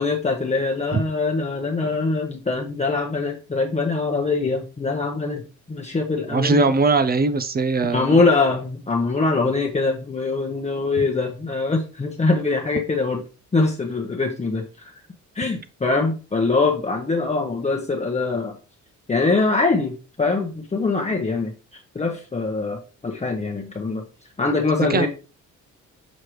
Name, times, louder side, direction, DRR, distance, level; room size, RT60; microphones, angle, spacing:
voice 1, 0.0-5.4 5.7-6.7 7.9-13.2 13.5-14.9 15.3-18.6 19.1-24.0 24.4-25.1, left 3 dB, 20° left, 1.0 m, -23 dB
voice 2, 6.3-8.2 24.9-25.1, right 3 dB, 30° right, 0.5 m, -20 dB
6.3 x 4.8 x 3.1 m
cardioid pair, 90°, 30 cm